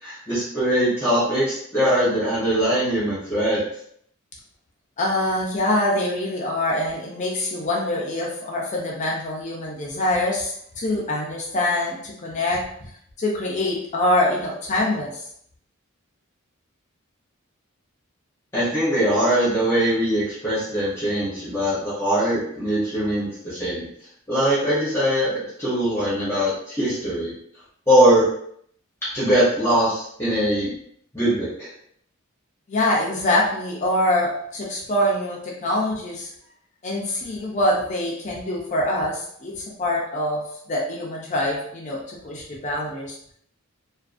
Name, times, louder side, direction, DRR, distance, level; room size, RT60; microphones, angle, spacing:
voice 1, 0.0-3.6 18.5-23.9 24.3-27.3 27.9-28.3 29.1-30.7 31.1-31.7, equal, 10° left, -10 dB, 0.8 m, -21 dB
voice 2, 5.0-12.6 13.2-15.2 32.7-36.3 36.8-40.4 40.7-43.2, left 1 dB, 35° left, -3 dB, 0.5 m, -24 dB
2.5 x 2.5 x 2.5 m, 0.66 s
head